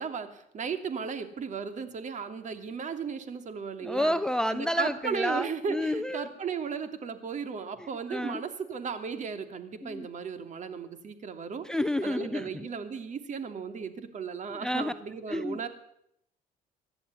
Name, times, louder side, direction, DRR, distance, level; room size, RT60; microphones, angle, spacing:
voice 1, 0.0-4.2 4.5-11.7 12.0-15.7, right 6 dB, 45° right, 9 dB, 2.9 m, -35 dB
voice 2, 3.8-6.3 7.8-8.4 9.8-10.1 11.6-12.7 14.5-14.9 15.3-15.6, left 1 dB, 5° left, 12 dB, 0.8 m, -30 dB
25.5 x 11.5 x 9.8 m, 0.74 s
cardioid pair, 110°, 17 cm